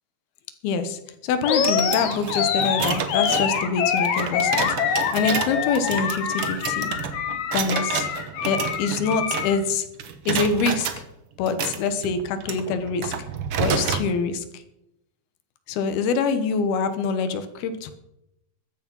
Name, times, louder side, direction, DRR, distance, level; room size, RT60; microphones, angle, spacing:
voice 1, 0.6-6.9 7.5-8.1 8.5-9.9 10.3-11.0 11.4-13.1 13.6-14.6 15.7-17.9, left 5 dB, 90° left, 10 dB, 3.2 m, -25 dB
Animal, 1.4-9.6, left 7 dB, 60° left, 2.4 m, -25 dB
sound 1, 1.5-9.7 10.0-11.0 11.5-14.1, right 7 dB, 70° right, 1.3 m, -30 dB
14.5 x 12.0 x 5.4 m, 0.86 s
omnidirectional pair, 4.3 m